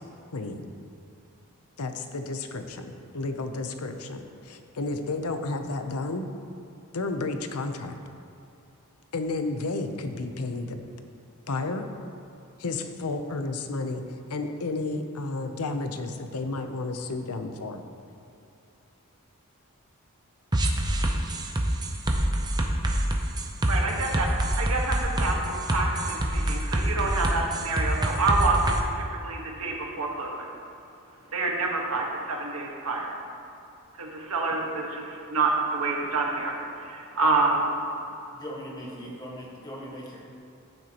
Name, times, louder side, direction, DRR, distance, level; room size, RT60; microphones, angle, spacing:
voice 1, 0.3-0.7 1.8-6.2 6.9-8.0 9.1-10.8 11.5-11.9 12.6-14.0 14.3-17.8, left 3 dB, 90° left, 7 dB, 0.7 m, -32 dB
sound 1, 20.5-28.8, right 1 dB, 20° right, 0.6 m, -26 dB
voice 2, 23.6-30.5 31.3-33.1 34.0-37.7, right 3 dB, 85° right, -1 dB, 1.5 m, -28 dB
voice 3, 38.3-40.2, equal, 20° left, -3 dB, 1.5 m, -39 dB
11.5 x 9.4 x 3.0 m, 2.7 s
head